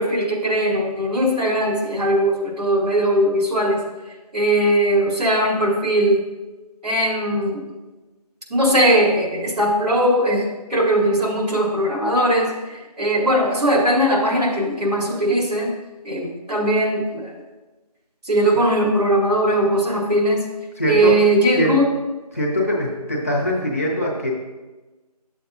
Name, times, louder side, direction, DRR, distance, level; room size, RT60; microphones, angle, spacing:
voice 1, 0.0-3.8 4.3-6.2 6.8-7.6 8.5-10.4 10.7-15.7 16.0-17.3 18.2-20.4 20.8-21.9, right 1 dB, 75° right, -2 dB, 2.4 m, -19 dB
voice 2, 20.8-21.1 21.6-21.8 22.3-24.3, equal, 20° left, -2 dB, 0.8 m, -22 dB
9.7 x 7.0 x 2.5 m, 1.2 s
figure-of-eight pair, 170°, 20 cm